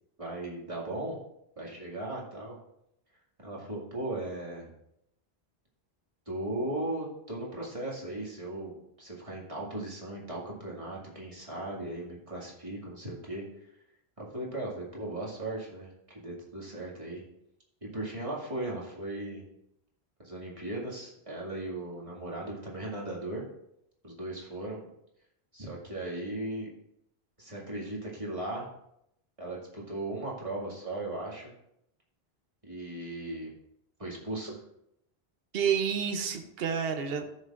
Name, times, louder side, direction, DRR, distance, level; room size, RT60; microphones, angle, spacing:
voice 1, 0.2-1.2 1.6-2.6 3.4-4.7 6.3-13.7 14.2-17.2 17.9-19.4 20.2-23.4 24.0-24.8 25.5-26.7 27.4-28.7 29.4-31.5 32.6-33.5 34.0-34.6, right 1 dB, 30° right, -4 dB, 2.2 m, -37 dB
voice 2, 35.5-37.2, right 7 dB, 70° right, 5 dB, 1.0 m, -29 dB
14.5 x 6.7 x 2.5 m, 0.80 s
omnidirectional pair, 1.1 m